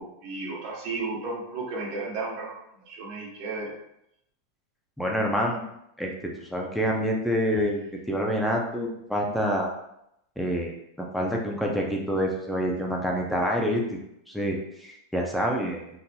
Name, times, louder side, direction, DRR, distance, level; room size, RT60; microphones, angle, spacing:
voice 1, 0.0-2.5 2.9-3.7, right 3 dB, 50° right, -4 dB, 1.2 m, -33 dB
voice 2, 5.0-5.7 6.0-7.8 8.1-9.7 10.4-14.0 14.3-15.9, equal, ahead, -1 dB, 0.4 m, -27 dB
3.9 x 2.7 x 2.3 m, 0.79 s
supercardioid pair, 145°, 0 cm